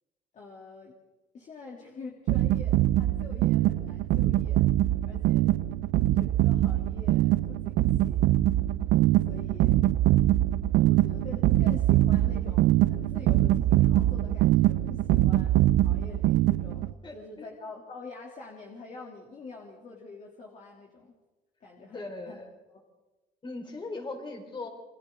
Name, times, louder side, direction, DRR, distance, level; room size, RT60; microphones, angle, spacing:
voice 1, 0.3-0.9 1.3-4.6 4.9-5.5 6.1-8.3 9.2-9.8 10.8-21.1 21.6-22.4 22.7-22.8, left 3 dB, 45° left, -2 dB, 3.2 m, -46 dB
sound 1, 2.3-16.9, right 15 dB, 90° right, 0.7 m, -23 dB
voice 2, 17.0-17.5 21.9-22.5 23.4-24.7, left 3 dB, 30° left, 2 dB, 5.1 m, -39 dB
29.5 x 23.0 x 3.9 m, 1.1 s
cardioid pair, 110°, 17 cm